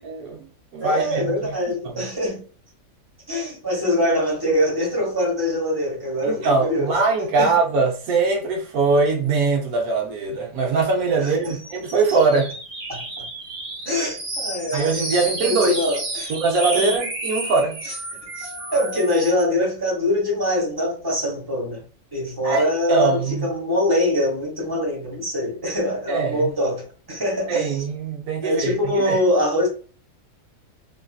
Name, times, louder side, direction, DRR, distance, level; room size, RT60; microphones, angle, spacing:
voice 1, 0.0-0.4 0.7-1.6 1.8-2.1 6.2-12.5 14.7-15.8 16.3-17.8 22.4-23.5 26.1-26.5 27.5-29.2, right 4 dB, 80° right, 1.3 m, -22 dB
voice 2, 0.8-2.4 3.3-6.9 7.4-7.5 11.2-11.6 12.9-13.0 13.8-16.3 16.7-16.9 17.8-17.9 18.3-21.8 22.1-27.8 28.4-29.7, left 1 dB, 15° right, 1.1 m, -23 dB
sound 1, 11.4-19.4, right 2 dB, 60° right, 1.3 m, -31 dB
3.1 x 2.6 x 2.3 m
omnidirectional pair, 1.5 m